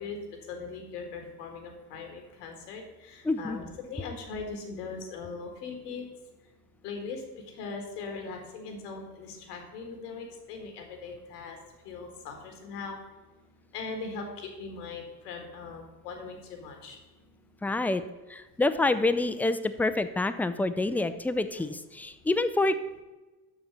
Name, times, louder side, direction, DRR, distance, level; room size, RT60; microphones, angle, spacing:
voice 1, 0.0-6.1 6.8-11.6 11.8-13.0 13.7-17.0, left 4 dB, 80° left, 4 dB, 1.8 m, -40 dB
voice 2, 3.2-3.6 17.6-18.0 18.3-22.7, left 2 dB, 5° left, 11 dB, 0.3 m, -27 dB
6.8 x 6.5 x 5.9 m, 1.1 s
hypercardioid pair, 60°, 47 cm